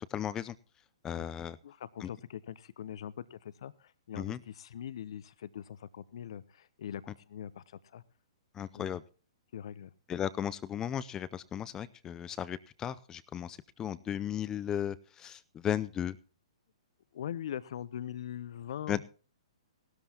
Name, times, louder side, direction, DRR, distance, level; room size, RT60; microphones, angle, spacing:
voice 1, 0.1-0.5 1.0-1.6 2.0-2.1 4.2-4.4 8.5-9.0 10.1-16.2 18.9-19.0, left 10 dB, 20° left, 17 dB, 0.6 m, -35 dB
voice 2, 1.6-8.0 8.7-9.0 9.5-9.9 17.1-19.0, left 10 dB, 60° left, 18 dB, 0.7 m, -42 dB
18.0 x 13.0 x 2.9 m, 0.36 s
hypercardioid pair, 125°, 3 cm